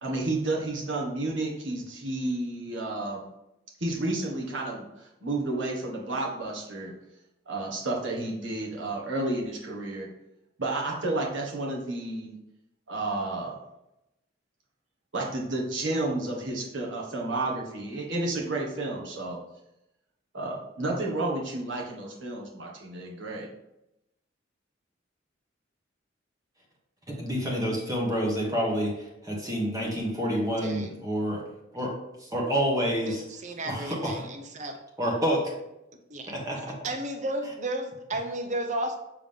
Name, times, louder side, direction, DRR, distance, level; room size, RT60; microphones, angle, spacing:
voice 1, 0.0-3.3 3.8-6.9 7.5-10.1 10.6-12.3 12.9-13.6 15.1-19.4 20.3-23.5, right 2 dB, 80° right, -2 dB, 1.5 m, -31 dB
voice 2, 27.1-28.9 29.2-31.4 31.7-31.9 32.3-33.2 33.6-34.2 35.0-35.4 36.3-36.6, equal, 20° right, -2 dB, 1.4 m, -28 dB
voice 3, 30.6-30.9 33.1-34.8 36.1-36.3 36.8-39.0, right 1 dB, 40° right, 5 dB, 0.7 m, -33 dB
7.3 x 3.7 x 3.5 m, 0.89 s
head